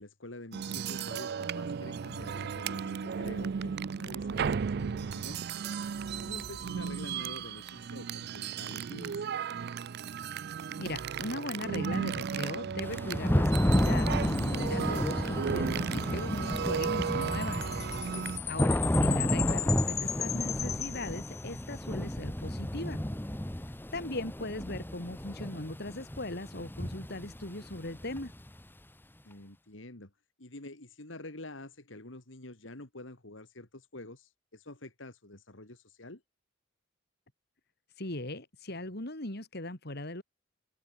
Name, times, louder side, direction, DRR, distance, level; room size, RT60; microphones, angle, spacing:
voice 1, 0.0-5.4 6.2-9.3 18.0-18.3 29.2-30.1 30.4-36.2, left 2 dB, 75° left, 3.0 m, -47 dB
sound 1, 0.5-18.4, right 6 dB, 55° right, 0.4 m, -35 dB
voice 2, 10.8-17.7 18.5-23.0 23.9-28.3 38.0-40.2, left 2 dB, 55° left, 3.9 m, -39 dB
Thunder / Rain, 12.8-28.6, equal, 10° left, 1.2 m, -31 dB
Chime, 17.2-21.7, left 10 dB, 35° left, 2.0 m, -36 dB
open air
head